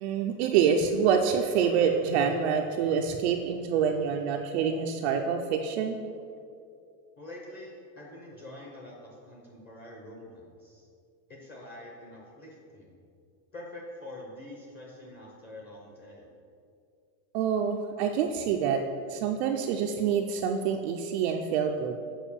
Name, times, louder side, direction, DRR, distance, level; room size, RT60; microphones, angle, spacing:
voice 1, 0.0-6.0 17.3-18.8 19.1-22.0, right 7 dB, 45° right, 2 dB, 0.4 m, -26 dB
voice 2, 7.2-10.9 11.3-12.9 13.5-16.3, left 1 dB, 20° left, -2 dB, 0.8 m, -45 dB
7.3 x 4.8 x 7.0 m, 2.4 s
supercardioid pair, 175°, 47 cm